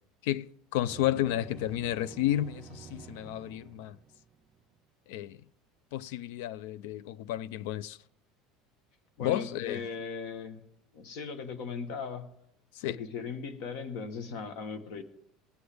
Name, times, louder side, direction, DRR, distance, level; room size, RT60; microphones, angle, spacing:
voice 1, 0.2-4.0 5.1-5.4 5.9-8.0 9.2-9.9 12.7-13.0, left 13 dB, 75° left, 0.3 m, -32 dB
sound 1, 0.8-4.8, right 7 dB, 30° right, 0.4 m, -49 dB
voice 2, 9.2-10.6 10.9-12.3 12.9-15.0, left 5 dB, 55° left, 1.1 m, -38 dB
19.0 x 8.0 x 3.4 m
cardioid pair, 170°, 0 cm